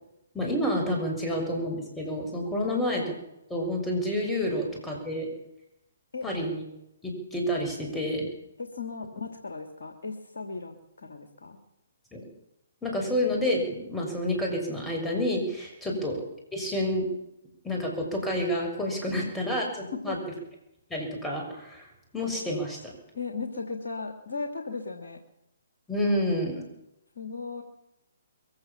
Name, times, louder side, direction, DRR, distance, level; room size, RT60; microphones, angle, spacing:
voice 1, 0.3-3.0 3.5-5.3 6.2-6.6 7.0-8.3 12.1-12.2 12.8-16.2 16.5-17.1 17.6-20.2 20.9-21.8 22.1-22.9 25.9-26.6, left 1 dB, 5° left, 0 dB, 6.7 m, -29 dB
voice 2, 8.6-11.6 15.9-16.0 19.9-20.2 23.1-25.2 27.2-27.6, left 4 dB, 65° left, 6 dB, 2.9 m, -36 dB
22.5 x 16.0 x 7.4 m, 0.85 s
figure-of-eight pair, 135°, 0 cm